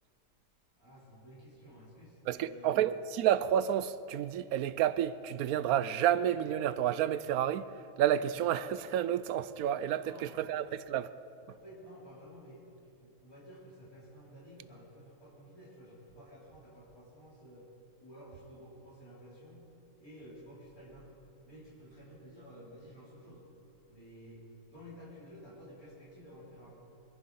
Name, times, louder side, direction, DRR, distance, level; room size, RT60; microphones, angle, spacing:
voice 1, 0.8-2.9 9.9-10.5 11.5-17.7 18.0-19.7 20.0-21.2 21.4-23.4 23.9-26.8, equal, 60° left, 4.4 m, -52 dB
voice 2, 2.3-7.7 8.0-11.1, right 10 dB, 70° right, 1.0 m, -30 dB
24.0 x 11.0 x 5.5 m
omnidirectional pair, 1.7 m